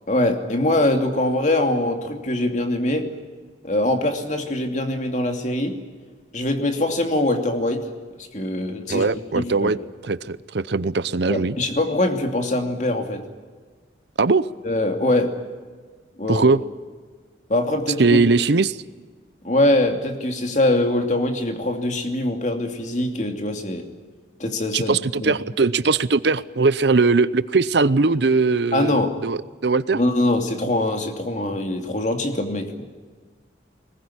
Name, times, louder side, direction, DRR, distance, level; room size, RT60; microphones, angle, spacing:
voice 1, 0.1-3.1 3.6-5.8 6.3-7.9 8.2-9.1 9.3-9.7 11.3-13.2 14.6-15.3 16.2-16.5 17.5-18.2 19.4-23.9 24.4-25.3 28.7-29.1 29.9-32.8, left 1 dB, 40° left, 5 dB, 2.7 m, -23 dB
voice 2, 8.9-9.8 10.0-11.6 14.2-14.5 16.3-16.6 18.0-18.8 24.7-30.0, right 3 dB, 70° right, 16 dB, 0.7 m, -20 dB
21.0 x 20.0 x 10.0 m, 1.5 s
head